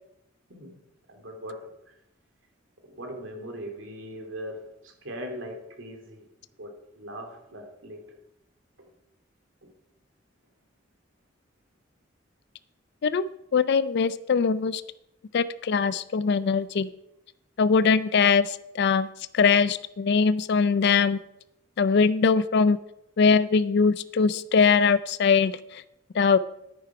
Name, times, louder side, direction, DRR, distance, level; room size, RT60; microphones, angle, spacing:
voice 1, 1.1-1.9 2.8-6.3 6.6-8.0 9.6-9.7 18.5-18.6, equal, 90° right, 3 dB, 2.4 m, -40 dB
voice 2, 13.0-14.8 15.3-16.9 17.6-19.1 19.3-21.2 21.8-22.8 23.2-25.8 26.1-26.4, left 5 dB, 60° left, 15 dB, 0.4 m, -22 dB
10.0 x 9.1 x 4.8 m, 0.85 s
head